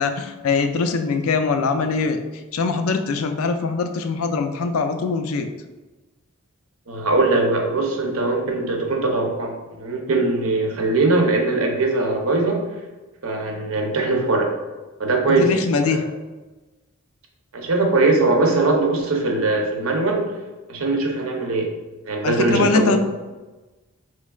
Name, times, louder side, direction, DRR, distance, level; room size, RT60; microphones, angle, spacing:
voice 1, 0.0-2.2 2.5-5.5 15.3-16.0 22.2-23.0, left 4 dB, 75° left, 7 dB, 0.4 m, -22 dB
voice 2, 6.9-12.6 13.2-14.5 15.0-15.5 15.8-16.0 17.5-20.3 20.7-21.7 22.1-23.0, right 2 dB, 75° right, 1 dB, 0.7 m, -21 dB
4.5 x 3.1 x 2.3 m, 1.2 s
head